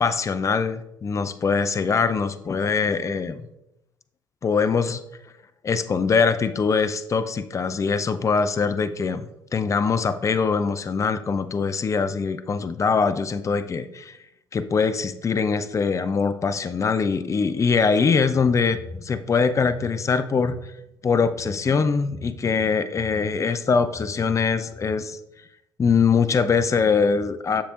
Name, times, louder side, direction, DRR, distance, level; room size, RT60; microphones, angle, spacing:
voice 1, 0.0-3.4 4.4-5.0 5.6-14.2 14.5-20.6 21.0-25.2 25.8-27.6, left 5 dB, 25° left, 11 dB, 0.5 m, -22 dB
7.4 x 6.7 x 2.5 m, 0.86 s
hypercardioid pair, 55°, 11 cm